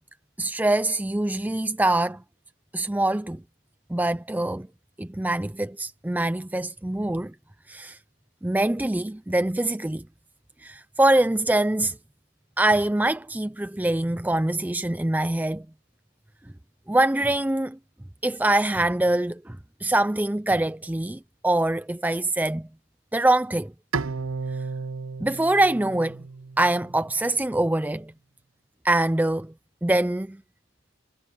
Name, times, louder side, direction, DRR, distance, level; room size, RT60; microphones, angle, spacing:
voice 1, 0.4-2.2 2.7-3.4 3.9-4.7 5.0-7.3 7.7-8.0 8.4-10.0 10.6-12.0 12.6-15.6 16.9-17.8 18.2-22.6 23.1-23.7 25.2-26.2 26.6-28.1 28.8-29.5 29.8-30.4, right 1 dB, 10° right, 0.4 m, -24 dB
Bowed string instrument, 23.9-27.2, right 4 dB, 75° right, 0.7 m, -33 dB
head